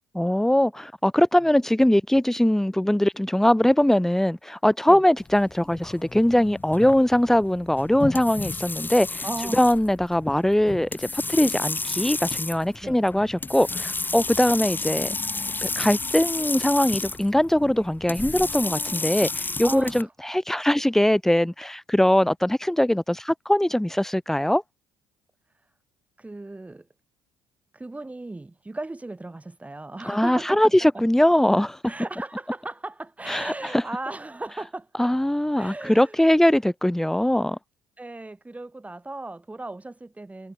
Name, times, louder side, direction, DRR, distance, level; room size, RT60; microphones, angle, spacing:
voice 1, 0.1-9.2 9.5-15.2 15.6-24.6 30.0-31.9 33.3-33.8 35.0-37.6, left 1 dB, 5° left, 0.7 m, -21 dB
sound 1, 5.2-20.0, left 3 dB, 20° left, 2.0 m, -32 dB
voice 2, 9.2-9.7 12.8-13.0 19.6-20.1 26.2-26.8 27.7-31.0 31.8-35.2 35.6-36.2 38.0-40.5, right 2 dB, 15° right, 3.0 m, -36 dB
supercardioid pair, 75°, 10 cm